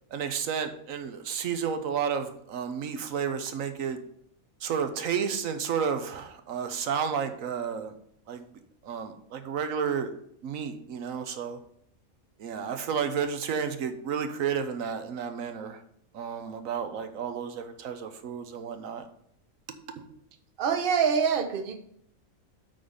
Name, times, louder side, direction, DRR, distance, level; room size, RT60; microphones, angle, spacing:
voice 1, 0.1-4.0 4.6-7.9 8.3-8.4 8.8-10.1 10.4-11.6 12.4-15.8 16.1-19.1 20.0-20.1, right 7 dB, 75° right, 8 dB, 1.2 m, -31 dB
voice 2, 20.6-21.8, right 6 dB, 45° right, 6 dB, 1.0 m, -25 dB
8.8 x 4.0 x 5.1 m, 0.69 s
omnidirectional pair, 1.4 m